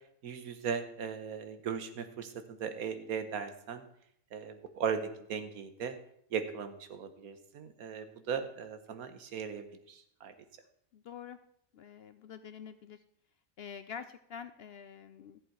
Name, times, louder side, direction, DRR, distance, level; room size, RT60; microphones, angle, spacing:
voice 1, 0.2-3.8 4.3-6.0 6.3-10.3, right 6 dB, 90° right, 9 dB, 1.5 m, -38 dB
voice 2, 10.9-11.4 11.7-13.0 13.6-15.4, left 7 dB, 65° left, 11 dB, 0.6 m, -46 dB
14.0 x 7.6 x 4.6 m, 0.73 s
omnidirectional pair, 1.5 m